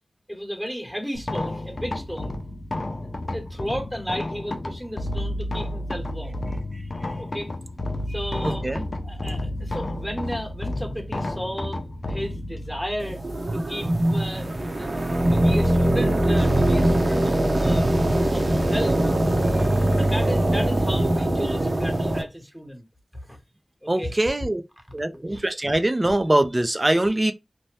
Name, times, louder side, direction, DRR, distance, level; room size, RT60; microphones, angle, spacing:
voice 1, 0.3-2.4 3.3-6.4 7.2-7.5 8.1-8.7 9.0-13.2 13.5-14.5 14.8-15.0 15.3-17.9 18.3-19.0 20.0-22.8 23.1-23.4 23.8-24.1 25.1-25.4, equal, ahead, 1.1 m, -34 dB
sound 1, 1.1-15.4, left 1 dB, 55° left, 0.4 m, -32 dB
voice 2, 6.7-7.1 8.4-8.8 19.6-19.7 23.9-24.6 24.9-27.3, right 1 dB, 30° right, 0.5 m, -23 dB
sound 2, 13.0-22.2, right 1 dB, 60° right, 0.8 m, -22 dB
2.7 x 2.2 x 3.2 m
wide cardioid pair, 50°, 0 cm